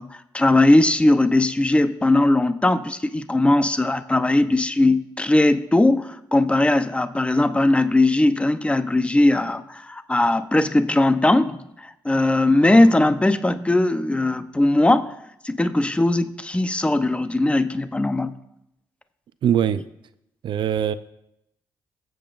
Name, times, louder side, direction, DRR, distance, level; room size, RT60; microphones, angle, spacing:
voice 1, 0.0-15.1 15.4-18.3, left 2 dB, 15° left, 10 dB, 0.8 m, -19 dB
voice 2, 19.4-19.8 20.4-20.9, right 9 dB, 65° right, 13 dB, 0.6 m, -21 dB
22.5 x 7.8 x 2.6 m, 0.81 s
supercardioid pair, 55°, 9 cm